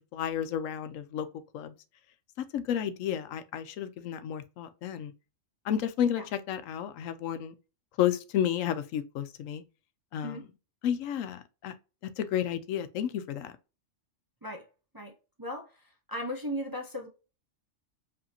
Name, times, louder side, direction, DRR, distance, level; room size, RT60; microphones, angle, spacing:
voice 1, 0.1-1.3 1.5-1.7 2.5-5.1 5.6-6.2 6.5-7.5 8.0-9.6 10.1-10.4 10.8-11.7 12.2-13.5, left 10 dB, 90° left, 1.0 m, -31 dB
voice 2, 15.4-15.7 16.1-17.1, equal, 25° right, 0.5 m, -36 dB
5.1 x 2.7 x 2.8 m
omnidirectional pair, 1.3 m